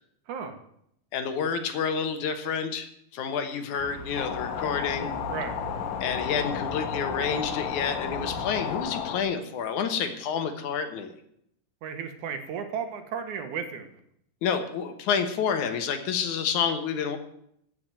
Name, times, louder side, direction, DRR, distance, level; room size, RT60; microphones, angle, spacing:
voice 1, 1.1-2.9 3.1-5.1 6.0-11.1 14.4-17.2, left 6 dB, 70° left, 8 dB, 2.5 m, -29 dB
sound 1, 3.8-8.8, right 2 dB, 25° left, 0.3 m, -41 dB
sound 2, 4.1-9.2, left 9 dB, 90° left, 2.7 m, -33 dB
voice 2, 11.8-13.9, right 7 dB, 70° right, 7 dB, 2.6 m, -34 dB
14.5 x 6.1 x 9.2 m, 0.73 s
omnidirectional pair, 3.7 m